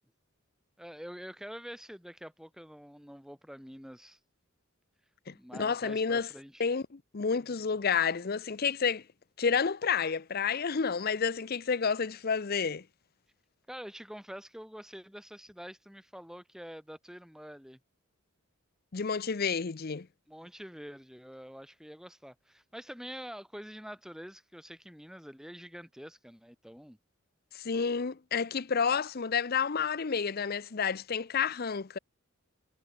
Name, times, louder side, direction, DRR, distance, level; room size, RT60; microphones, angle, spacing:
voice 1, 0.8-4.2 5.3-6.7 13.7-17.8 20.3-27.0, equal, 5° right, 6.1 m, -46 dB
voice 2, 5.3-6.3 6.6-9.0 9.4-12.8 18.9-20.1 27.5-32.0, left 6 dB, 50° left, 0.6 m, -30 dB
head